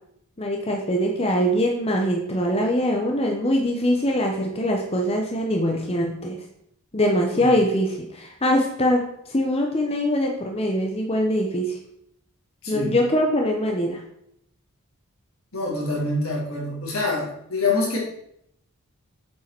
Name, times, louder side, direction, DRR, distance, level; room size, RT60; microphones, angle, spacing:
voice 1, 0.4-6.4 6.9-11.8 12.7-14.0, equal, 25° left, 1 dB, 0.9 m, -23 dB
voice 2, 12.6-13.0 15.5-18.0, left 2 dB, 75° left, -3 dB, 3.4 m, -26 dB
7.3 x 5.6 x 6.0 m, 0.74 s
head